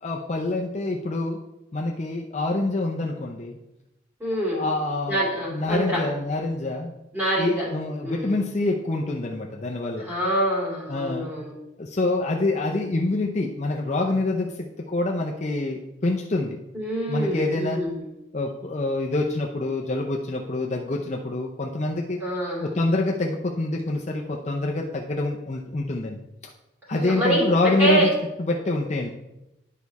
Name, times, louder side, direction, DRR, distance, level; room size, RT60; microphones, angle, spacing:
voice 1, 0.0-1.4 1.7-3.6 4.5-6.9 7.4-10.0 10.9-11.3 11.8-14.5 14.9-16.6 17.1-17.8 18.3-22.2 22.6-26.2 26.9-28.1 28.4-29.1, left 2 dB, 35° left, 0 dB, 0.5 m, -26 dB
voice 2, 4.2-4.7 5.1-6.0 7.1-7.7 8.0-8.3 10.0-11.5 16.7-18.0 22.2-22.7 26.9-28.1, right 1 dB, 10° right, -6 dB, 2.5 m, -25 dB
10.0 x 4.7 x 4.1 m, 0.94 s
head